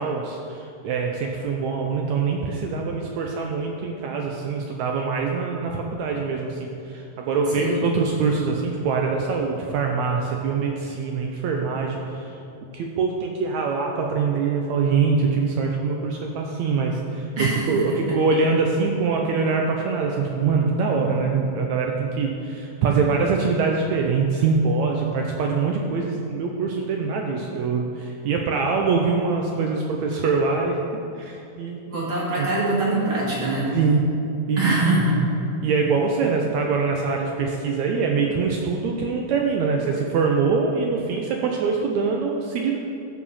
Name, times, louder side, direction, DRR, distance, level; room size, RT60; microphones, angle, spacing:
voice 1, 0.0-12.3 12.7-32.1 32.4-32.5 33.7-34.1 34.5-34.8 35.6-42.8, right 4 dB, 80° right, 1 dB, 1.6 m, -24 dB
voice 2, 17.4-17.8 31.9-33.7 34.6-35.2, right 2 dB, 45° right, -5 dB, 2.1 m, -23 dB
14.0 x 4.9 x 5.5 m, 2.7 s
omnidirectional pair, 3.9 m